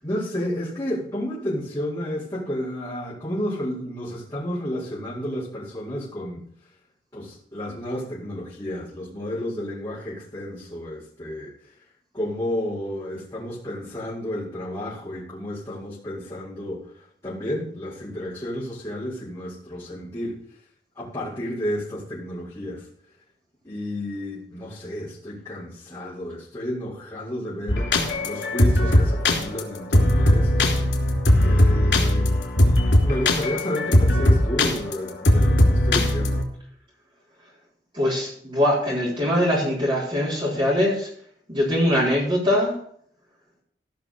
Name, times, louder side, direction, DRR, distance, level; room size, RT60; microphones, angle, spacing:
voice 1, 0.0-6.4 7.1-11.5 12.1-20.4 20.9-22.8 23.6-27.9 28.2-30.7 31.4-32.4 33.0-36.4, equal, 20° left, -12 dB, 4.9 m, -31 dB
sound 1, 27.7-36.4, left 1 dB, 90° left, 3.5 m, -19 dB
voice 2, 37.9-41.1 41.5-42.7, left 1 dB, 30° right, -9 dB, 4.4 m, -22 dB
17.0 x 6.1 x 6.6 m, 0.64 s
head